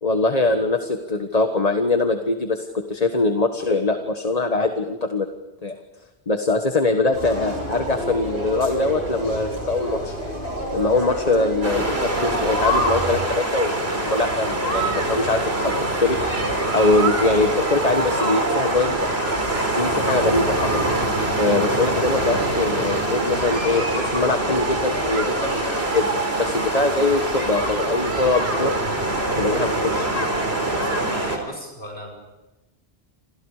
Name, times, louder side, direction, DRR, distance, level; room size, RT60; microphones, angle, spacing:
voice 1, 0.0-5.3 5.6-5.7 6.3-10.2 10.7-16.2 16.7-19.0 19.7-20.8 21.4-25.6 25.9-26.1 26.4-28.7 29.4-30.1, left 3 dB, 35° left, 5 dB, 1.5 m, -22 dB
sound 1, 7.1-13.3, right 1 dB, 85° right, 8.0 m, -29 dB
sound 2, 11.6-31.4, right 1 dB, 65° right, 4.7 m, -24 dB
voice 2, 30.6-32.2, equal, 65° left, 1 dB, 5.4 m, -37 dB
28.5 x 27.5 x 5.0 m, 1.1 s
omnidirectional pair, 1.1 m